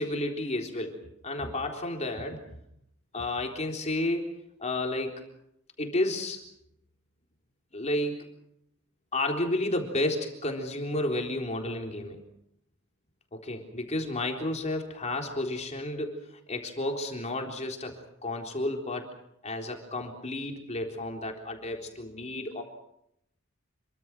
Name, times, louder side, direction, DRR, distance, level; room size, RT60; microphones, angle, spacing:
voice 1, 0.0-2.4 3.1-4.3 4.6-5.2 5.8-6.4 7.7-8.3 9.1-12.2 13.3-16.2 16.5-19.1 19.4-22.6, left 1 dB, 35° left, 2 dB, 3.9 m, -31 dB
27.5 x 24.0 x 6.2 m, 0.78 s
head